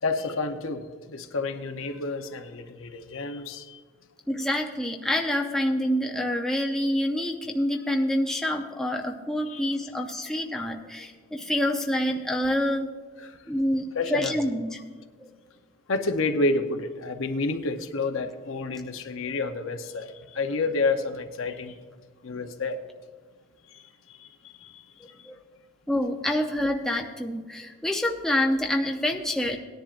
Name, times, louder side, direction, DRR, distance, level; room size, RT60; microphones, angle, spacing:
voice 1, 0.0-3.8 9.5-9.6 13.2-13.4 13.9-14.4 15.9-21.8 22.2-22.8 23.7-23.8 24.1-24.8, left 3 dB, 70° left, 0.8 m, -29 dB
voice 2, 4.3-12.9 13.5-14.8 15.2-15.3 25.3-25.4 25.9-29.6, left 1 dB, ahead, 0.6 m, -27 dB
18.5 x 10.5 x 2.5 m
head